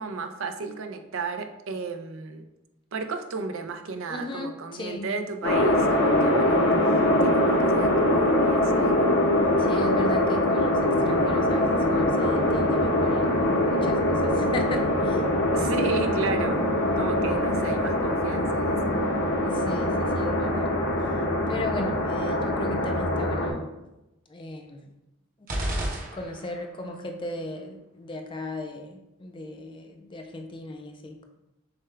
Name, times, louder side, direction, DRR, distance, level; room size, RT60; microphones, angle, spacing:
voice 1, 0.0-2.4 2.9-9.2 15.5-19.0, right 4 dB, 65° right, 6 dB, 0.5 m, -34 dB
voice 2, 4.1-5.2 9.6-15.3 19.4-20.7 21.5-23.7 24.3-24.9 26.1-31.2, left 1 dB, 25° left, 5 dB, 0.4 m, -36 dB
sound 1, 5.4-23.5, left 1 dB, 55° left, 0.8 m, -23 dB
sound 2, 25.5-26.8, right 1 dB, 40° right, 0.8 m, -31 dB
6.6 x 2.3 x 3.3 m, 0.92 s
head